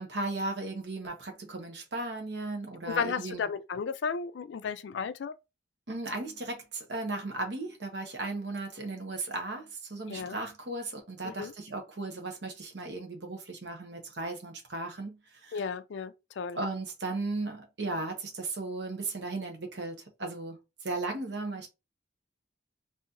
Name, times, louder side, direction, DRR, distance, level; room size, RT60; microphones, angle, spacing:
voice 1, 0.0-3.5 5.9-15.6 16.5-21.7, right 2 dB, 65° right, 1.0 m, -36 dB
voice 2, 2.9-5.3 10.1-10.4 11.2-11.5 15.5-16.6, left 6 dB, 70° left, 0.4 m, -34 dB
4.0 x 2.7 x 2.5 m
head